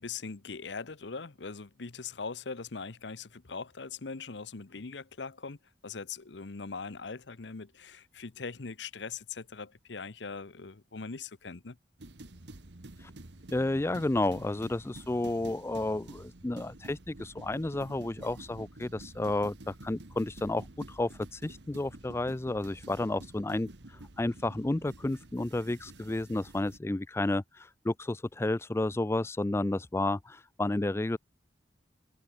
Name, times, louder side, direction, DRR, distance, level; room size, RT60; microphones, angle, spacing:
voice 1, 0.0-5.6 5.8-11.8, left 4 dB, 70° left, 0.9 m, -41 dB
sound 1, 12.0-26.8, right 2 dB, 70° right, 1.6 m, -49 dB
voice 2, 13.5-31.2, left 2 dB, 15° left, 0.4 m, -31 dB
head